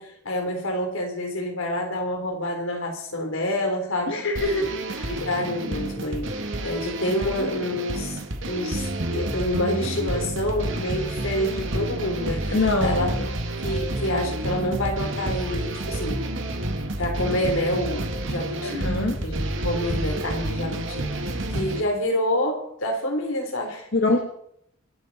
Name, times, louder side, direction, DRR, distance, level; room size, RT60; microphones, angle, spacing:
voice 1, 0.0-4.2 5.1-6.3 6.6-8.2 8.4-13.1 13.6-16.3 17.0-18.8 19.2-23.9, left 1 dB, 85° left, 3 dB, 3.7 m, -28 dB
voice 2, 4.1-5.2 12.5-13.3 18.6-19.2 23.9-24.3, left 2 dB, 65° left, 3 dB, 1.5 m, -25 dB
sound 1, 4.4-21.8, right 1 dB, 65° right, 2.0 m, -29 dB
25.0 x 9.2 x 4.2 m, 0.73 s
head